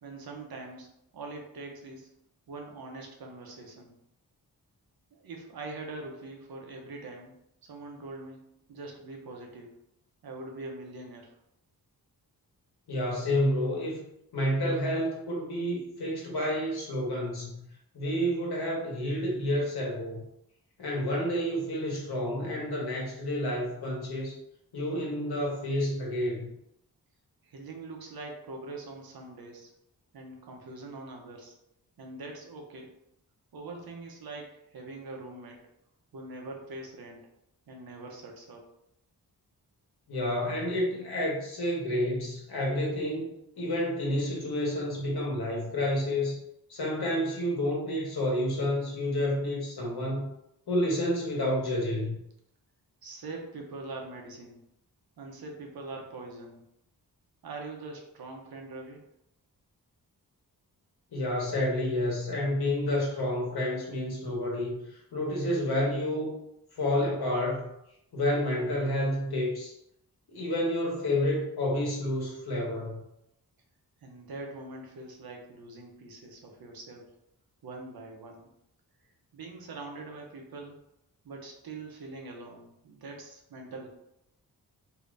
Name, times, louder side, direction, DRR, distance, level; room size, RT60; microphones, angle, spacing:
voice 1, 0.0-2.1 2.5-3.9 5.1-7.3 7.6-9.8 10.2-11.4 27.4-29.7 30.1-31.6 32.0-32.9 33.5-35.6 36.1-37.2 37.7-38.7 53.0-54.6 55.2-56.6 57.4-59.0 74.0-77.1 77.6-78.5 79.3-80.8 81.2-83.9, right 2 dB, 70° right, 1 dB, 0.7 m, -43 dB
voice 2, 12.9-14.0 14.3-17.7 17.9-20.2 20.8-24.3 24.7-26.5 40.1-46.4 46.7-50.3 50.7-52.2 61.1-64.8 65.1-66.3 66.8-67.7 68.1-69.7 70.3-73.0, left 1 dB, 80° left, -3 dB, 1.2 m, -29 dB
2.8 x 2.5 x 3.2 m, 0.80 s
wide cardioid pair, 170°, 38 cm